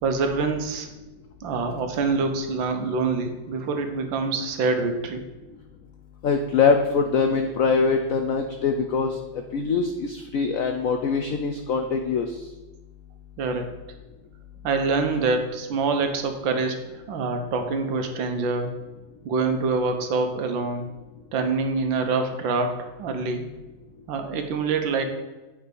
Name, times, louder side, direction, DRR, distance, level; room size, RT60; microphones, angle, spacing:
voice 1, 0.0-0.9 1.4-5.2 13.4-13.7 14.6-16.8 17.1-18.7 19.2-20.9 21.3-23.5 24.1-25.0, right 4 dB, 75° right, 5 dB, 1.6 m, -25 dB
voice 2, 6.2-9.2 9.5-12.3, left 5 dB, 85° left, 5 dB, 0.7 m, -23 dB
8.5 x 4.6 x 5.2 m, 1.1 s
omnidirectional pair, 2.1 m